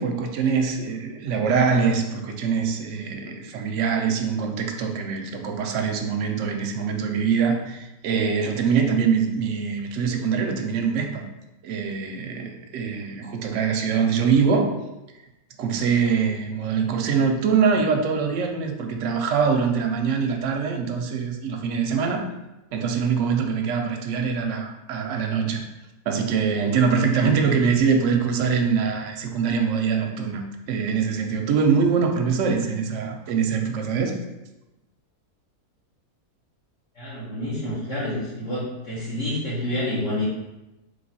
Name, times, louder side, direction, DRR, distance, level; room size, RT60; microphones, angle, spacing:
voice 1, 0.0-11.2 11.6-14.7 15.6-22.3 22.7-25.6 26.1-34.1, right 6 dB, 65° right, 4 dB, 0.8 m, -23 dB
voice 2, 36.9-40.2, left 1 dB, 55° left, -11 dB, 1.4 m, -28 dB
3.3 x 3.2 x 4.0 m, 0.99 s
omnidirectional pair, 1.6 m